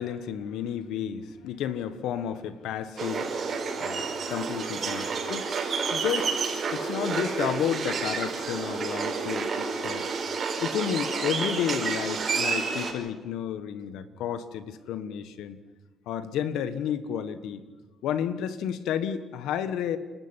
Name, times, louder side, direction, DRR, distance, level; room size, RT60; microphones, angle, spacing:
voice 1, 0.0-3.3 3.8-6.4 6.7-10.1 10.6-15.6 16.1-17.6 18.0-20.0, left 9 dB, 90° left, 12 dB, 1.6 m, -31 dB
sound 1, 3.0-12.9, right 5 dB, 50° right, 5.1 m, -30 dB
29.5 x 13.0 x 10.0 m, 1.3 s
cardioid pair, 90°, 0 cm